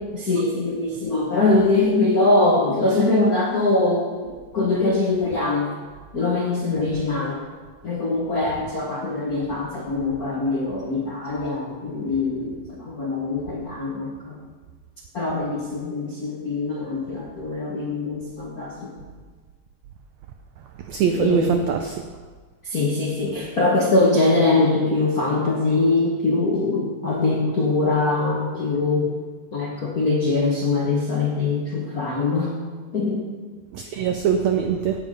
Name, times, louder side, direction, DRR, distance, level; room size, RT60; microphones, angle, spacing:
voice 1, 0.1-5.7 6.1-7.4 7.8-14.4 15.1-18.9 21.1-21.6 22.6-29.1 29.5-32.5 32.9-33.2, left 3 dB, 65° left, -3 dB, 0.9 m, -22 dB
voice 2, 20.9-21.9 33.7-35.0, right 7 dB, 85° right, 5 dB, 1.5 m, -22 dB
17.5 x 7.2 x 5.4 m, 1.5 s
omnidirectional pair, 4.2 m